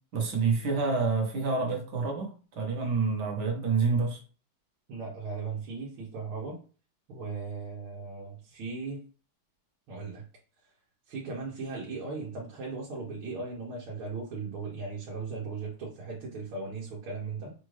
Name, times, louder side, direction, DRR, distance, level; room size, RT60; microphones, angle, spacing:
voice 1, 0.1-4.2, right 4 dB, 60° right, 1 dB, 1.6 m, -28 dB
voice 2, 4.9-6.6 7.1-9.0 9.9-10.2 11.1-17.5, right 4 dB, 90° right, -4 dB, 1.9 m, -37 dB
5.4 x 2.5 x 3.1 m, 0.38 s
omnidirectional pair, 2.3 m